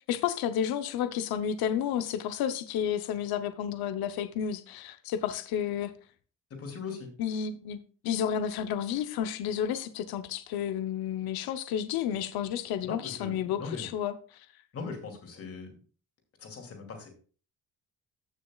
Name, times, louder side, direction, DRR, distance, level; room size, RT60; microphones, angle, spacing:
voice 1, 0.1-5.9 7.2-7.8 8.0-14.5, left 9 dB, 85° left, 0.8 m, -31 dB
voice 2, 6.5-7.1 12.8-13.9 14.7-15.7 16.4-17.1, left 4 dB, 40° left, 2.5 m, -40 dB
14.5 x 6.4 x 2.3 m
cardioid pair, 155°, 36 cm